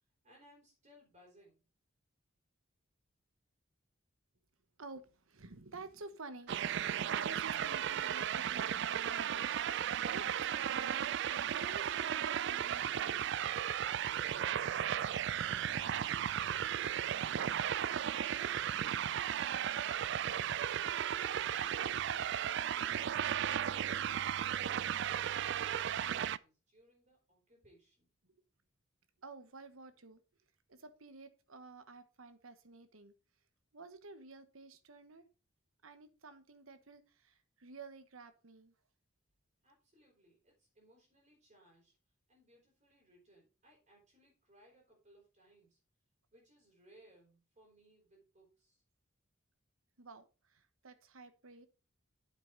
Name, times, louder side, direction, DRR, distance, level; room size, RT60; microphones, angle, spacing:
voice 1, 0.2-1.6 22.0-28.1 39.6-41.9 42.3-45.8 46.3-48.8, right 1 dB, 35° right, -1 dB, 4.4 m, -65 dB
voice 2, 4.8-13.3 29.2-30.2 30.7-33.1 33.7-35.2 35.8-38.7 50.0-51.7, right 3 dB, 85° right, 11 dB, 1.2 m, -52 dB
sound 1, 6.5-26.4, right 9 dB, 60° right, 0.3 m, -35 dB
8.6 x 7.7 x 3.9 m, 0.33 s
head